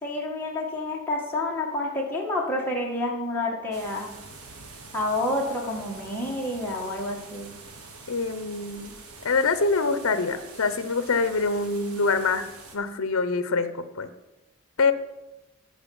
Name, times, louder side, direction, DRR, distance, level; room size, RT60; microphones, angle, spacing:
voice 1, 0.0-4.1 4.9-7.5, left 1 dB, 10° left, -3 dB, 1.7 m, -29 dB
sound 1, 3.7-12.8, right 3 dB, 85° right, 1.4 m, -45 dB
voice 2, 8.1-8.9 9.2-12.4 12.7-14.1 14.8-14.9, left 4 dB, 65° left, 12 dB, 0.7 m, -25 dB
11.5 x 4.4 x 7.1 m, 0.99 s
head